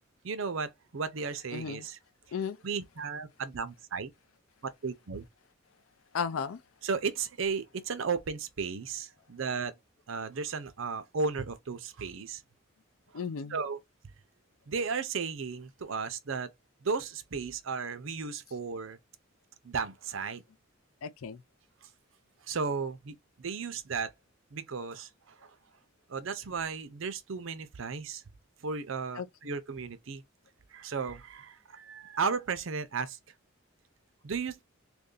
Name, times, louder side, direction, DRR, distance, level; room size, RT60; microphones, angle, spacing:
voice 1, 0.2-2.0 2.6-4.1 4.6-5.2 6.8-9.7 10.1-12.4 13.5-13.8 14.7-16.5 16.8-19.0 19.6-20.4 22.5-24.1 24.5-25.5 26.1-28.2 28.6-30.2 30.7-33.2 34.2-34.6, right 5 dB, 75° right, 0.6 m, -34 dB
voice 2, 1.5-1.9 2.3-2.6 6.1-6.6 13.1-13.6 21.0-21.4 29.2-29.3, left 6 dB, 90° left, 0.5 m, -34 dB
2.9 x 2.6 x 3.8 m
head